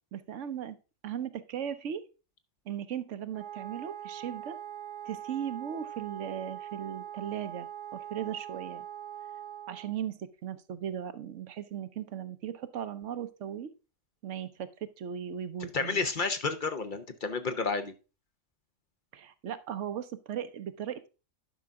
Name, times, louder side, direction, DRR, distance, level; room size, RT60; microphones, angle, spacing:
voice 1, 0.1-0.8 1.0-2.1 2.7-4.6 5.0-8.9 9.7-13.7 14.2-16.0 19.1-21.1, right 9 dB, 75° right, 12 dB, 1.1 m, -37 dB
Wind instrument woodwind instrument, 3.3-10.0, right 11 dB, 45° right, 0.8 m, -42 dB
voice 2, 15.7-17.9, left 4 dB, 45° left, 9 dB, 0.9 m, -31 dB
11.5 x 5.6 x 3.6 m, 0.31 s
omnidirectional pair, 1.3 m